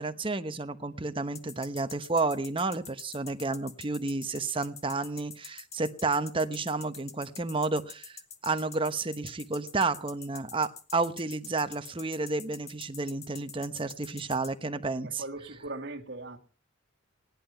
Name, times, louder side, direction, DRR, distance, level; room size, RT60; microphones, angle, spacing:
voice 1, 0.0-15.2, right 3 dB, 25° right, 1.0 m, -31 dB
sound 1, 1.3-14.5, left 7 dB, 35° left, 1.6 m, -45 dB
voice 2, 15.0-16.4, right 2 dB, 60° right, 2.2 m, -39 dB
18.0 x 11.0 x 5.7 m
head